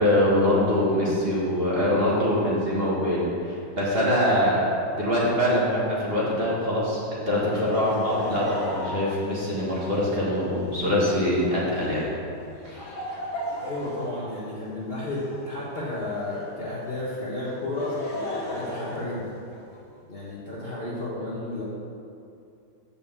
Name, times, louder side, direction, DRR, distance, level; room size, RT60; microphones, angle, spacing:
voice 1, 0.0-12.1 12.6-13.2, left 1 dB, 30° right, -7 dB, 1.7 m, -24 dB
Laughter, 7.5-16.6 17.4-19.8, left 1 dB, 60° left, 2.0 m, -37 dB
voice 2, 13.5-19.3 20.1-21.6, left 2 dB, 35° left, -8 dB, 1.2 m, -32 dB
7.2 x 5.2 x 7.1 m, 2.6 s
omnidirectional pair, 2.1 m